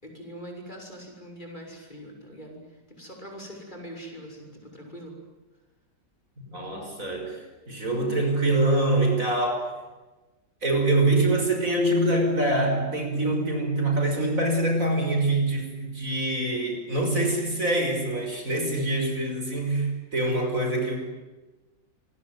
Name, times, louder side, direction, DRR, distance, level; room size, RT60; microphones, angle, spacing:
voice 1, 0.0-5.2, equal, 25° left, 2 dB, 6.6 m, -42 dB
voice 2, 6.5-9.7 10.6-21.0, right 2 dB, 45° right, 3 dB, 6.3 m, -25 dB
27.0 x 22.0 x 9.5 m, 1.1 s
omnidirectional pair, 2.0 m